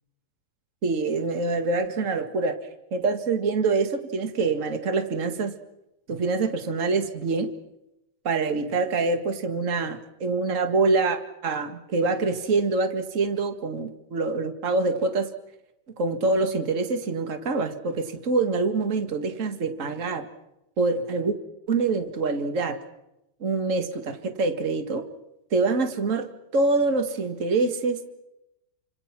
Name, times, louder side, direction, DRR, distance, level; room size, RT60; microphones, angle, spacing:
voice 1, 0.8-2.6 2.9-5.5 6.1-7.5 8.2-15.3 16.0-20.3 20.8-21.4 21.7-22.8 23.4-25.0 25.5-26.3 26.5-28.1, right 3 dB, 60° right, 8 dB, 0.8 m, -25 dB
29.0 x 26.0 x 6.0 m, 0.89 s
omnidirectional pair, 4.6 m